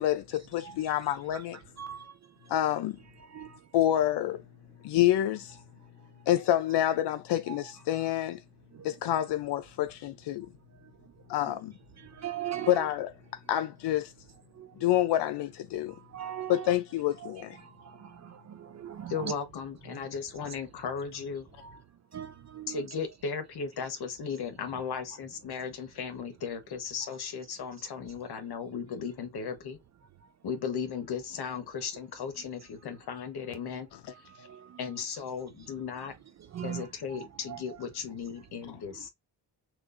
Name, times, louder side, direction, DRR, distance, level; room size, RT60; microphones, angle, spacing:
voice 1, 0.0-1.6 2.5-3.0 3.7-4.4 4.8-5.6 6.3-8.4 8.8-10.5 11.3-11.7 12.7-13.1 13.5-14.1 14.8-16.0 16.5-17.6 38.7-38.8, left 12 dB, 90° left, 0.5 m, -27 dB
voice 2, 12.2-12.7 16.1-16.6 18.7-19.3 22.1-22.8 36.5-36.9 37.5-37.6, right 10 dB, 45° right, 0.4 m, -37 dB
voice 3, 19.1-21.5 22.7-29.8 30.4-33.9 34.8-36.2 36.6-39.1, left 6 dB, 70° left, 1.1 m, -36 dB
6.3 x 2.5 x 2.5 m
wide cardioid pair, 160°, 40 cm